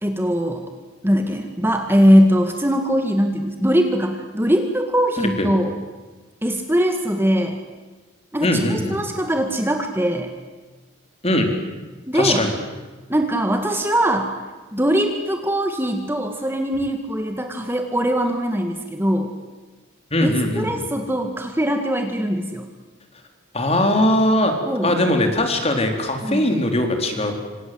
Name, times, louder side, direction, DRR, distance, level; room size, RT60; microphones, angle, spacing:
voice 1, 0.0-0.7 1.0-5.7 6.4-7.6 8.3-10.3 12.1-12.5 13.1-14.3 14.7-19.3 20.2-20.3 20.6-22.7 24.7-25.0 26.2-26.5, equal, 10° right, 5 dB, 1.9 m, -21 dB
voice 2, 8.4-9.0 11.2-11.5 12.1-12.5 20.1-20.7 23.5-24.5 24.8-27.3, left 1 dB, 30° left, 4 dB, 4.2 m, -20 dB
27.5 x 26.0 x 8.0 m, 1.3 s
head